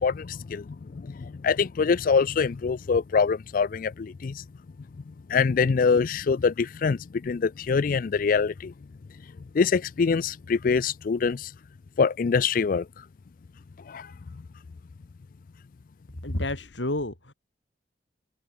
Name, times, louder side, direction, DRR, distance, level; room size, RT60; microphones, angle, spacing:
voice 1, 0.0-4.4 5.1-8.7 9.5-11.5 12.0-12.9 13.9-14.1, left 5 dB, 50° left, 0.4 m, -24 dB
voice 2, 16.2-17.3, left 1 dB, 85° left, 3.8 m, -30 dB
open air
head